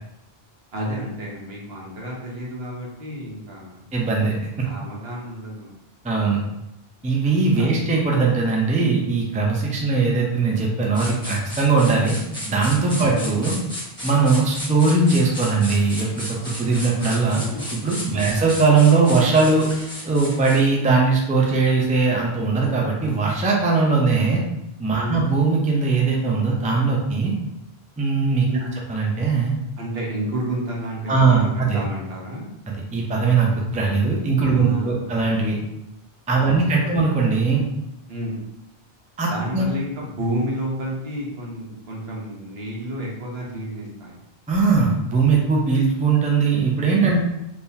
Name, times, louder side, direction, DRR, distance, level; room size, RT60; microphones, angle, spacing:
voice 1, 0.7-3.8 4.6-5.7 7.6-7.7 13.0-13.2 18.1-18.4 24.9-25.2 28.5-28.7 29.8-32.4 34.5-35.2 36.3-37.0 38.1-38.4 39.3-44.2 47.1-47.2, right 1 dB, 75° right, -3 dB, 1.2 m, -31 dB
voice 2, 3.9-4.7 6.0-6.4 7.0-12.2 12.5-13.6 14.0-17.4 17.7-19.7 20.1-24.4 24.8-27.3 28.0-28.5 28.9-29.5 31.1-31.8 32.9-35.6 36.3-37.6 39.2-39.6 44.5-47.2, right 4 dB, 10° right, -1 dB, 0.4 m, -20 dB
sound 1, 10.9-20.7, equal, 5° left, 1.0 m, -34 dB
3.6 x 2.9 x 2.7 m, 0.88 s
omnidirectional pair, 1.0 m